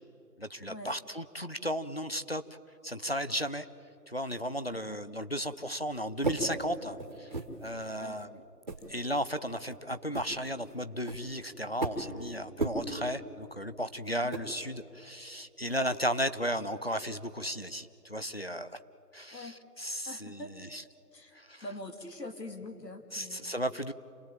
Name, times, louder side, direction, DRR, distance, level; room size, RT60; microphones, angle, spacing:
voice 1, 0.4-2.4 2.8-3.7 4.1-7.3 7.6-8.4 8.9-18.8 19.1-20.8 21.3-21.6 23.1-23.9, equal, 40° left, 11 dB, 0.6 m, -35 dB
sound 1, 5.9-7.7 8.2-8.3 8.7-8.9 9.3-9.4 9.6-9.8 10.1-12.3 12.6-12.8 14.0-14.5 15.7-15.8, right 3 dB, 30° right, 1.7 m, -36 dB
voice 2, 20.1-20.5 21.1-21.3 21.6-23.5, left 2 dB, 85° left, 6 dB, 2.6 m, -43 dB
27.5 x 18.0 x 8.9 m, 2.9 s
figure-of-eight pair, 170°, 48 cm